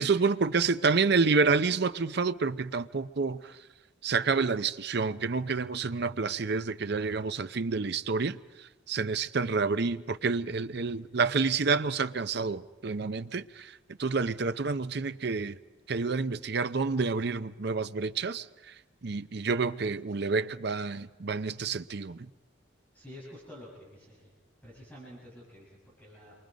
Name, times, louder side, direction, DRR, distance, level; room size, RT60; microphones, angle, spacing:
voice 1, 0.0-3.5 4.0-8.4 8.9-13.7 14.0-15.6 15.9-18.4 19.0-22.3, right 4 dB, 60° right, 0.7 m, -28 dB
voice 2, 22.9-24.3 24.6-26.3, equal, 10° left, 6.4 m, -49 dB
28.0 x 24.0 x 5.2 m
head